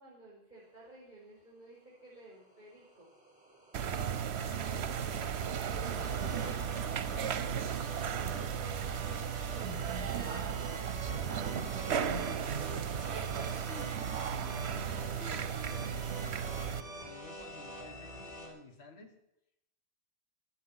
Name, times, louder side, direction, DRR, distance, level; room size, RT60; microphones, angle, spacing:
voice 1, 0.0-3.1 5.6-9.9 10.4-13.0, right 2 dB, 45° right, -5 dB, 5.6 m, -54 dB
sound 1, 2.4-18.5, right 2 dB, 5° right, 5.1 m, -46 dB
sound 2, 3.7-16.8, right 8 dB, 75° right, 1.1 m, -35 dB
voice 2, 4.3-5.3 13.5-19.2, left 3 dB, 70° left, 4 dB, 2.0 m, -52 dB
16.0 x 13.0 x 5.7 m, 0.81 s
omnidirectional pair, 1.1 m